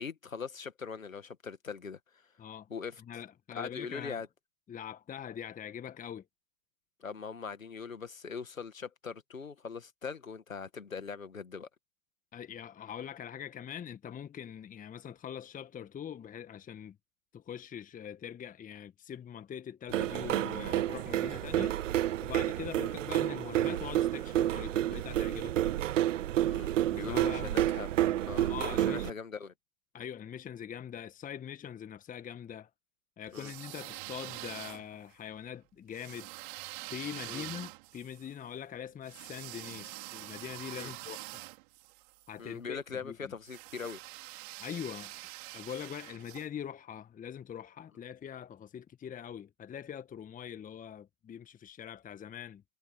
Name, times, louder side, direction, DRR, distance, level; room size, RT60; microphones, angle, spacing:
voice 1, 0.0-2.0 2.7-3.0 3.5-4.3 7.0-11.7 22.8-22.9 26.5-27.9 28.3-29.5 33.3-33.5 37.3-37.4 40.7-40.9 42.4-44.0, left 5 dB, 85° left, 2.2 m, -41 dB
voice 2, 2.4-2.7 3.0-4.2 4.7-6.2 12.3-17.0 17.3-21.8 22.2-25.8 27.0-27.6 28.5-29.1 29.9-32.7 33.2-36.3 36.9-41.4 42.3-43.3 44.6-45.2 45.5-52.6, left 9 dB, 20° left, 1.6 m, -43 dB
sound 1, 19.9-29.1, right 12 dB, 70° right, 0.8 m, -30 dB
sound 2, 33.3-35.1 35.9-42.3 43.4-46.5, right 24 dB, 50° right, 5.6 m, -45 dB
figure-of-eight pair, 95°, 39 cm